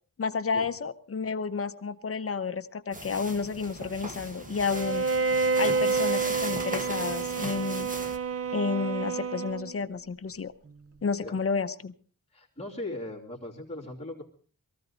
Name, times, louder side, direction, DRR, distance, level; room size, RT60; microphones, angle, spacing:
voice 1, 0.2-5.0 5.6-7.9 8.5-10.5 11.0-11.9, left 5 dB, 40° left, 11 dB, 0.8 m, -31 dB
sound 1, 2.9-8.2, right 1 dB, 25° right, 1.5 m, -39 dB
Bowed string instrument, 4.7-9.8, right 4 dB, 40° right, 0.9 m, -28 dB
voice 2, 12.3-14.2, left 1 dB, 15° left, -8 dB, 3.2 m, -39 dB
22.5 x 15.0 x 4.0 m, 0.41 s
wide cardioid pair, 165°, 35 cm